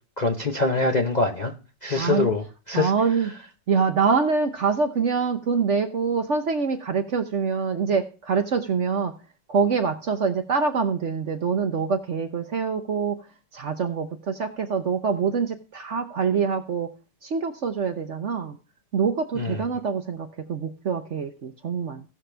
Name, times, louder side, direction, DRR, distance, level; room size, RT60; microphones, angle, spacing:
voice 1, 0.2-1.5 1.8-2.9 19.4-19.6, left 3 dB, 35° left, 0.7 m, -24 dB
voice 2, 2.0-2.3 2.7-3.3 3.7-9.1 9.5-13.3 13.5-16.9 17.2-18.6 18.9-22.0, right 5 dB, 50° right, 1.0 m, -25 dB
17.0 x 6.5 x 3.3 m
omnidirectional pair, 1.9 m